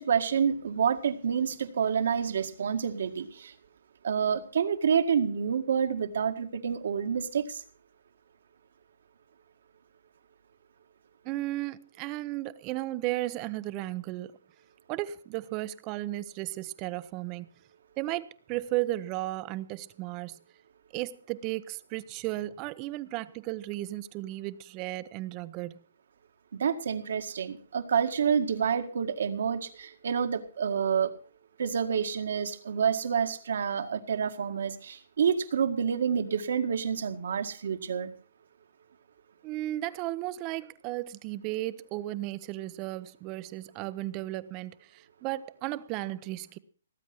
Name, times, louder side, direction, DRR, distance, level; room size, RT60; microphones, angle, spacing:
voice 1, 0.0-3.5 4.0-7.5 26.6-31.1 31.6-38.1, right 7 dB, 70° right, 1.9 m, -28 dB
voice 2, 11.2-14.3 14.9-17.5 18.0-20.4 20.9-25.8 39.4-46.6, right 16 dB, 30° right, 0.7 m, -34 dB
18.5 x 8.4 x 6.0 m
hypercardioid pair, 150°, 0 cm